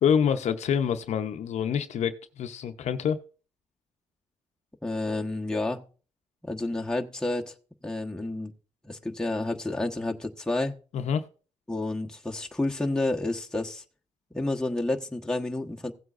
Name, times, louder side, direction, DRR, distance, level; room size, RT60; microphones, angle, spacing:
voice 1, 0.0-3.2 10.9-11.3, left 7 dB, 65° left, 0.8 m, -26 dB
voice 2, 4.8-5.8 6.4-7.5 7.8-8.5 8.8-10.8 11.7-13.8 14.3-15.9, left 2 dB, 5° left, 1.2 m, -30 dB
16.5 x 7.8 x 2.5 m
cardioid pair, 85°, 12 cm